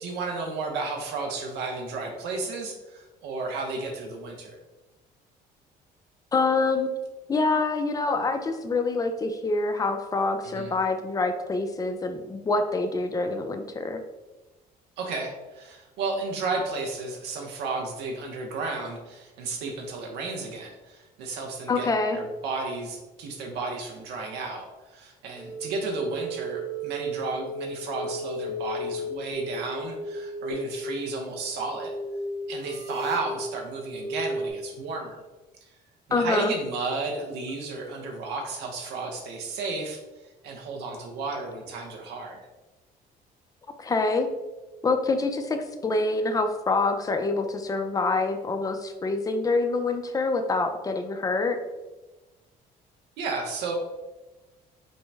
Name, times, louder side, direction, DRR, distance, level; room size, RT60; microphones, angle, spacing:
voice 1, 0.0-4.5 10.4-10.7 15.0-31.9 32.5-35.2 36.1-40.0 40.4-42.4 53.2-53.7, right 3 dB, 85° right, 1 dB, 0.8 m, -33 dB
voice 2, 6.3-6.9 7.3-14.0 21.7-22.2 36.1-36.5 43.8-44.3 44.8-51.6, left 3 dB, 20° left, 6 dB, 0.5 m, -26 dB
sound 1, 25.3-34.5, equal, 70° left, 1.4 m, -35 dB
5.2 x 2.1 x 3.4 m, 1.1 s
cardioid pair, 110°, 17 cm